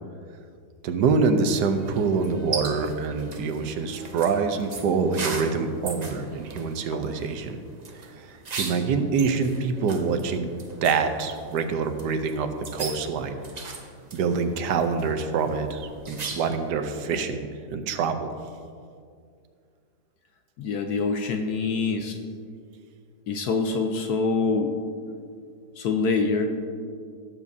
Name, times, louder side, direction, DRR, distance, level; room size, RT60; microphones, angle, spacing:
voice 1, 0.8-7.6 8.2-10.5 10.8-13.4 14.1-18.3, right 5 dB, 80° right, 8 dB, 1.3 m, -25 dB
sound 1, 1.5-16.7, right 4 dB, 40° right, 0.6 m, -39 dB
voice 2, 20.6-22.2 23.3-24.7 25.8-26.5, left 4 dB, 70° left, 4 dB, 1.2 m, -25 dB
16.5 x 7.4 x 2.7 m, 2.2 s
omnidirectional pair, 1.8 m